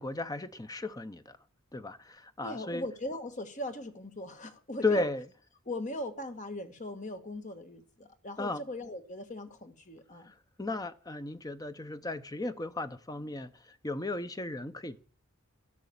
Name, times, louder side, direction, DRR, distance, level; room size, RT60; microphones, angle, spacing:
voice 1, 0.0-1.4 1.7-2.8 4.8-5.2 8.4-8.6 10.2-15.0, left 2 dB, 15° left, 0.7 m, -35 dB
voice 2, 2.4-5.1 5.7-10.3, left 1 dB, 35° left, 1.4 m, -39 dB
13.0 x 6.2 x 8.4 m
head